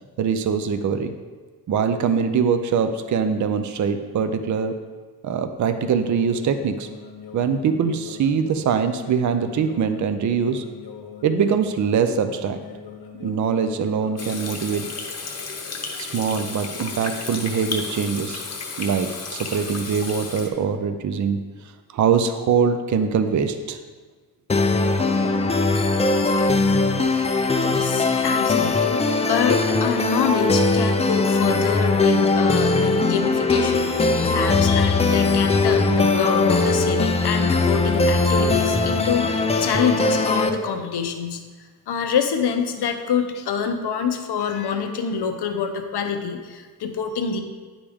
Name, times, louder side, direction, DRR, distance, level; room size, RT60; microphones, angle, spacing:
voice 1, 0.2-1.1 1.7-4.8 5.2-6.9 7.3-10.6 11.2-12.6 13.2-14.9 16.0-18.4 18.8-21.4 21.9-23.8, right 6 dB, 50° right, 9 dB, 0.5 m, -23 dB
sound 1, 5.6-14.4, left 7 dB, 70° left, 1.0 m, -41 dB
Water tap faucet / Sink (filling or washing), 14.2-20.5, left 4 dB, 40° left, 0.8 m, -33 dB
sound 2, 24.5-40.5, left 3 dB, 20° left, 0.3 m, -20 dB
voice 2, 27.6-41.4 41.9-47.4, left 6 dB, 85° left, 6 dB, 0.8 m, -26 dB
9.9 x 5.0 x 3.5 m, 1.4 s
wide cardioid pair, 160°, 39 cm